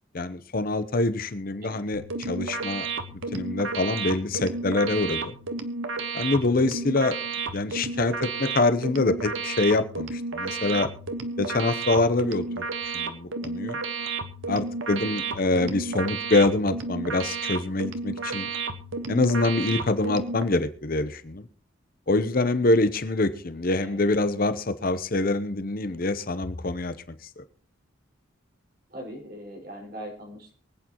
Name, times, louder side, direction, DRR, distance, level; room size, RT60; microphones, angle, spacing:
voice 1, 0.1-2.9 3.3-5.4 6.1-7.2 7.5-10.9 11.4-12.7 12.9-13.8 14.5-18.5 19.1-21.5 22.1-26.9 27.2-27.4, left 2 dB, 45° left, 11 dB, 0.8 m, -25 dB
sound 1, 1.9-20.4, right 3 dB, 75° right, 1.2 m, -32 dB
voice 2, 28.9-30.5, equal, 50° right, -1 dB, 5.1 m, -41 dB
24.0 x 8.6 x 3.0 m, 0.42 s
head